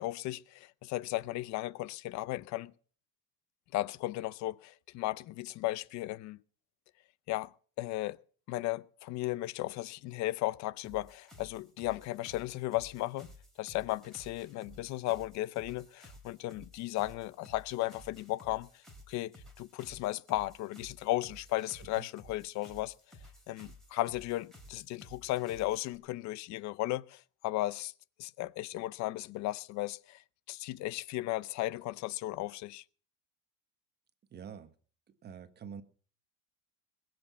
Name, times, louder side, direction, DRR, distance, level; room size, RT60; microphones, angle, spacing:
voice 1, 0.0-2.7 3.7-6.4 7.3-7.5 7.8-8.2 8.5-13.3 13.6-22.9 23.5-27.9 28.2-32.8, left 17 dB, 50° left, 0.6 m, -35 dB
sound 1, 10.8-25.9, left 1 dB, ahead, 3.5 m, -55 dB
voice 2, 34.3-34.7 35.1-35.8, right 7 dB, 25° right, 1.1 m, -46 dB
21.0 x 7.8 x 7.0 m
cardioid pair, 160°, 37 cm